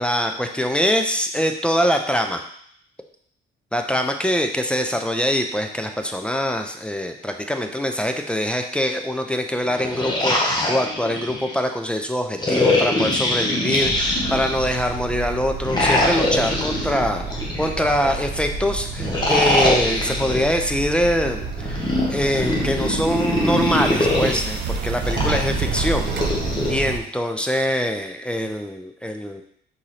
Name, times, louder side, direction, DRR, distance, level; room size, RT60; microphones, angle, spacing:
voice 1, 0.0-2.4 3.7-17.2 17.6-26.1 26.4-29.4, equal, 5° left, 5 dB, 0.5 m, -23 dB
sound 1, 9.6-11.6 12.4-14.8 15.6-18.2 19.0-20.6 21.6-24.4 25.0-26.7, left 1 dB, 20° left, 1.2 m, -23 dB
sound 2, 13.8-27.0, right 4 dB, 60° right, 0.6 m, -29 dB
4.2 x 3.6 x 3.3 m, 0.64 s
cardioid pair, 90°, 20 cm